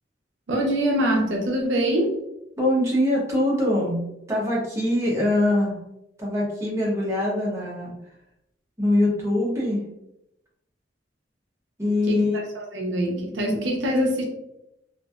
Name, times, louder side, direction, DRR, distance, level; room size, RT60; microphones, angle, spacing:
voice 1, 0.5-2.2 12.1-14.2, equal, 75° right, 0 dB, 0.6 m, -24 dB
voice 2, 2.6-4.0 4.3-5.8 6.2-8.0 8.8-9.8 11.8-12.4, left 1 dB, 15° right, -5 dB, 0.8 m, -23 dB
3.0 x 2.5 x 2.3 m, 0.84 s
head